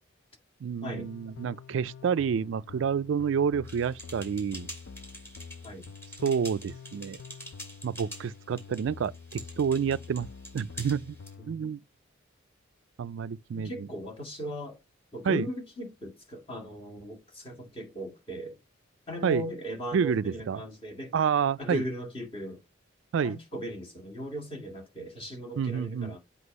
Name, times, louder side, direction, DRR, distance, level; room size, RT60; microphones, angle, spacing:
voice 1, 0.6-4.7 6.2-7.2 7.8-10.3 10.5-11.2 11.5-11.8 13.0-13.9 15.3-15.4 19.2-19.4 19.9-20.6 21.1-21.8 23.1-23.4 25.6-26.2, right 7 dB, 65° right, 0.3 m, -29 dB
sound 1, 0.9-11.5, left 5 dB, 70° left, 0.4 m, -47 dB
sound 2, 3.7-11.3, equal, 10° left, 2.9 m, -46 dB
voice 2, 11.4-11.8 13.5-14.8 15.1-18.6 19.1-21.1 21.6-22.6 23.2-26.2, equal, 25° left, 2.0 m, -38 dB
7.9 x 2.9 x 5.3 m
head